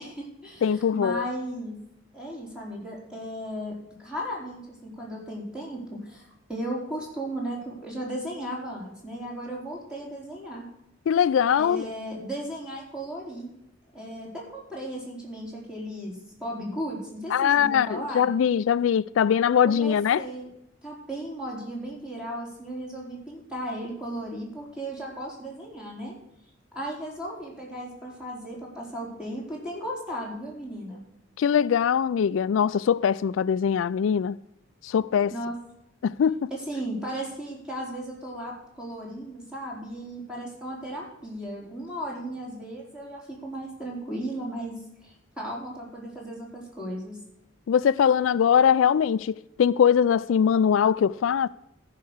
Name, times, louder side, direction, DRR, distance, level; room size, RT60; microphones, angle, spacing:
voice 1, 0.0-1.8 2.1-3.7 4.0-10.7 11.6-13.5 13.9-18.4 19.7-20.5 20.8-26.2 26.7-31.0 35.3-35.6 36.5-44.7 45.0-47.2, right 1 dB, 5° right, 4.1 m, -35 dB
voice 2, 0.6-1.2 11.1-11.9 17.3-20.2 31.4-34.4 34.8-35.3 36.0-36.5 47.7-51.5, left 8 dB, 80° left, 0.3 m, -22 dB
14.0 x 5.8 x 6.3 m
head